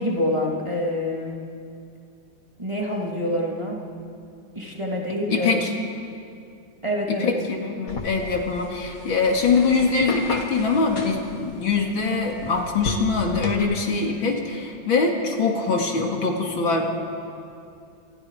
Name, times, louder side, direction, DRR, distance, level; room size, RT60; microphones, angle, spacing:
voice 1, 0.0-1.4 2.6-3.8 4.5-5.5 6.8-7.4, left 1 dB, 15° right, -3 dB, 3.1 m, -26 dB
voice 2, 5.3-5.7 7.1-16.9, left 4 dB, 80° left, 1 dB, 3.2 m, -23 dB
sound 1, 7.9-13.6, left 3 dB, 45° left, 2.2 m, -34 dB
28.5 x 28.0 x 5.1 m, 2.5 s
omnidirectional pair, 2.1 m